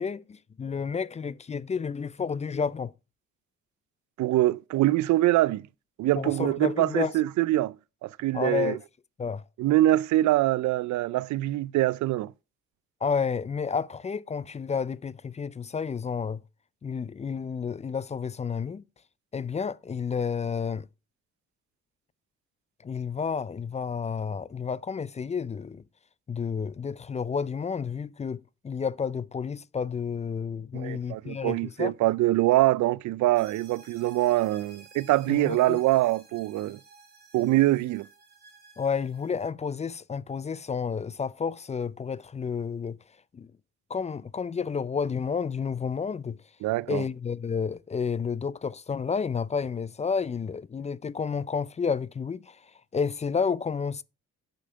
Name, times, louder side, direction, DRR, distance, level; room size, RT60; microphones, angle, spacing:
voice 1, 0.0-2.9 6.1-7.1 8.3-8.8 9.2-9.4 13.0-16.4 16.8-18.8 19.3-20.9 22.8-25.8 26.3-31.9 35.3-35.8 38.8-43.0 43.3-43.5 43.9-46.4 46.9-54.0, left 6 dB, 25° left, 0.4 m, -31 dB
voice 2, 4.2-5.7 6.0-7.7 8.0-8.8 9.6-12.3 30.7-36.8 37.3-38.1 46.6-47.0, right 16 dB, 75° right, 0.5 m, -24 dB
sound 1, 33.3-39.5, right 3 dB, 30° right, 3.1 m, -54 dB
8.7 x 5.3 x 5.5 m
cardioid pair, 90°, 30 cm